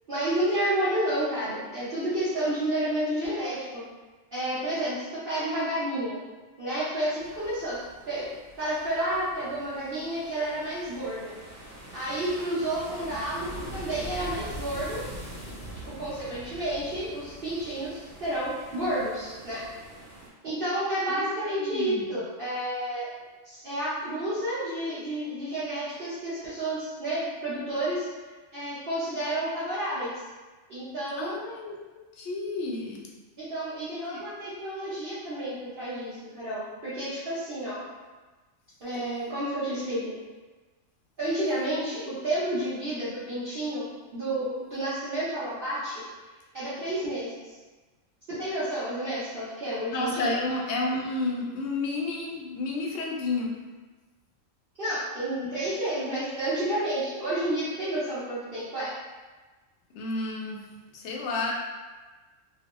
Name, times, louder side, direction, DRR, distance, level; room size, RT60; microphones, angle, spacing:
voice 1, 0.1-3.8 4.3-6.2 6.6-7.8 8.1-8.3 8.6-11.3 11.9-15.0 15.9-19.6 20.4-23.1 23.4-28.1 28.5-30.1 30.7-31.4 33.4-37.9 38.8-40.1 41.2-46.0 46.5-47.5 48.4-50.4 54.8-58.9, right 1 dB, 50° right, -13 dB, 0.9 m, -30 dB
sound 1, 7.2-20.3, right 1 dB, 15° right, 0.8 m, -43 dB
voice 2, 21.1-22.1 31.2-31.8 32.2-33.1 34.1-34.2 49.9-53.6 59.9-60.7 60.9-61.5, left 3 dB, 70° left, -1 dB, 0.8 m, -31 dB
2.9 x 2.1 x 3.0 m, 1.3 s
omnidirectional pair, 1.3 m